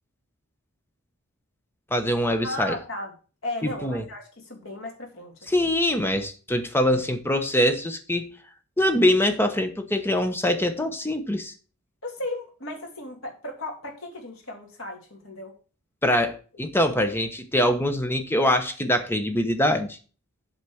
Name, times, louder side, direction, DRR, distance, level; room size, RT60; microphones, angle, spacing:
voice 1, 1.9-2.8 3.6-4.0 5.5-8.3 8.8-11.5 16.0-20.0, left 1 dB, 10° left, 7 dB, 1.0 m, -23 dB
voice 2, 2.4-3.1 3.4-5.7 12.0-15.5, left 1 dB, 70° left, 1 dB, 2.8 m, -35 dB
8.0 x 4.2 x 7.0 m, 0.36 s
head